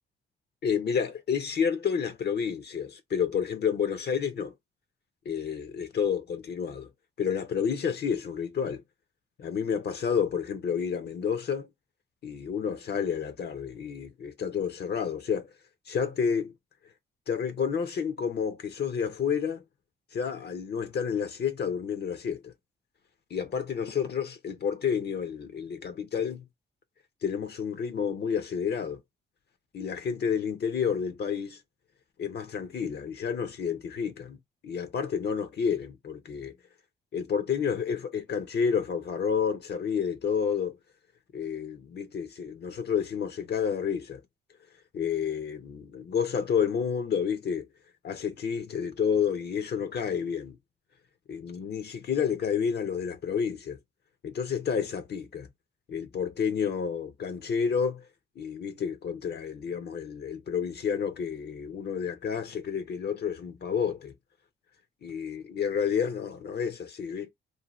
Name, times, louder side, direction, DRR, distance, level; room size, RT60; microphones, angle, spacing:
voice 1, 0.6-4.5 5.3-6.9 7.2-8.8 9.4-11.7 12.2-15.5 15.9-16.5 17.3-19.6 20.1-22.5 23.3-26.4 27.2-29.0 29.7-31.6 32.2-34.4 34.6-36.5 37.1-40.8 41.3-44.2 44.9-47.7 48.0-50.6 51.3-53.8 54.2-55.5 55.9-58.1 58.4-64.1 65.0-67.3, left 7 dB, 55° left, 0.6 m, -30 dB
2.7 x 2.2 x 2.9 m
cardioid pair, 85°, 20 cm